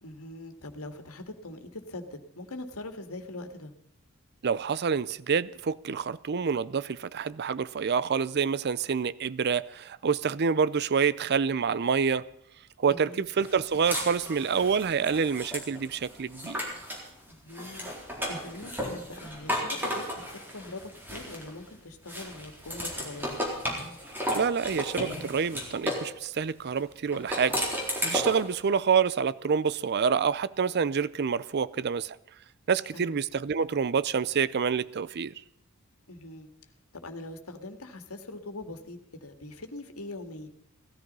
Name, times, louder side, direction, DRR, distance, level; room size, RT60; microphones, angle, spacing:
voice 1, 0.0-3.7 12.8-13.2 17.3-17.9 18.3-20.3 20.5-23.4 32.9-33.2 36.1-36.5 36.9-40.5, left 2 dB, 80° left, 2.0 m, -42 dB
voice 2, 4.4-12.3 12.8-16.6 24.4-27.6 28.0-32.2 32.7-35.3, right 6 dB, 50° right, 0.5 m, -27 dB
sound 1, 13.4-17.1 17.5-21.7 22.1-26.1 27.1-28.5, equal, 10° right, 4.1 m, -34 dB
17.0 x 13.5 x 5.4 m
head